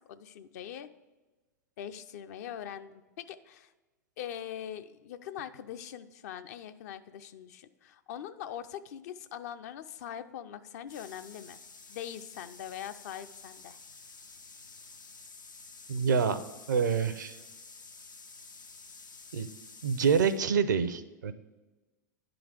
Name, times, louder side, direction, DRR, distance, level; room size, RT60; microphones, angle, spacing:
voice 1, 0.1-0.9 1.8-3.7 4.2-11.6 11.9-13.8, left 10 dB, 55° left, 10 dB, 0.5 m, -42 dB
sound 1, 10.9-20.4, left 4 dB, 90° left, 0.8 m, -51 dB
voice 2, 15.9-16.4 16.7-17.4 19.3-19.5 19.8-21.3, right 6 dB, 75° right, 12 dB, 0.6 m, -26 dB
10.5 x 3.9 x 5.0 m, 1.2 s
hypercardioid pair, 100°, 10 cm